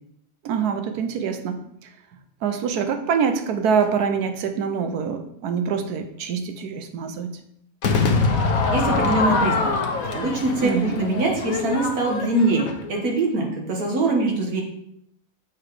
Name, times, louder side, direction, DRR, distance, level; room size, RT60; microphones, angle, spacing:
voice 1, 0.4-1.9 2.4-7.4 10.6-11.0, right 6 dB, 85° right, 7 dB, 1.2 m, -25 dB
Crowd / Fireworks, 7.8-13.1, left 3 dB, 65° left, 1.3 m, -24 dB
voice 2, 8.7-9.7 10.1-14.6, right 2 dB, 70° right, 0 dB, 1.9 m, -23 dB
7.2 x 4.0 x 4.8 m, 0.73 s
omnidirectional pair, 1.6 m